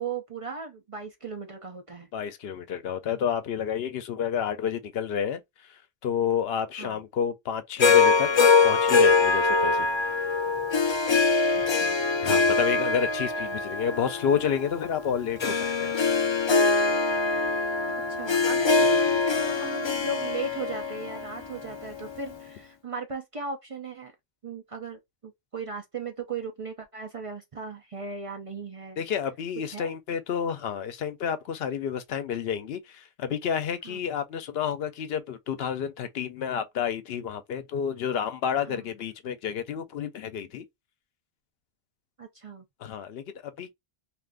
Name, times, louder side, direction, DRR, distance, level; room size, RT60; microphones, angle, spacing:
voice 1, 0.0-2.1 6.8-7.0 11.5-12.0 18.1-24.1 24.4-29.0 29.7-29.9 33.8-34.0 38.6-38.9 42.2-42.6, right 4 dB, 45° right, 0.5 m, -37 dB
voice 2, 2.1-5.4 6.0-9.9 12.2-15.9 29.0-40.6 42.8-43.7, left 8 dB, 75° left, 0.8 m, -30 dB
Harp, 7.8-22.2, left 4 dB, 50° left, 0.3 m, -23 dB
2.5 x 2.4 x 3.4 m
omnidirectional pair, 1.0 m